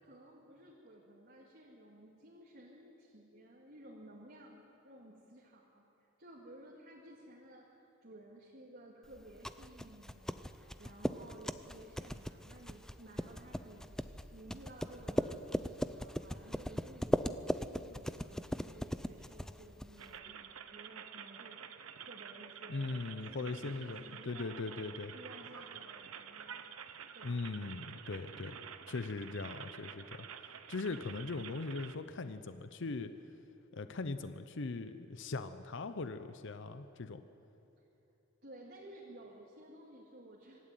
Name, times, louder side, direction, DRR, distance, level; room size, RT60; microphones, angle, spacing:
voice 1, 0.0-5.8 6.2-13.9 14.3-21.6 22.1-24.7 25.1-26.6 27.1-27.7 37.8-37.9 38.4-40.6, right 1 dB, 50° right, -4 dB, 2.3 m, -55 dB
sound 1, 9.1-20.2, equal, 5° left, 0.4 m, -39 dB
sound 2, 20.0-32.0, right 8 dB, 85° right, 0.9 m, -49 dB
voice 2, 22.7-25.1 27.2-28.6 28.9-30.3 30.7-33.1 33.7-37.2, left 3 dB, 60° left, 10 dB, 0.7 m, -40 dB
25.0 x 12.5 x 9.1 m, 3.0 s
head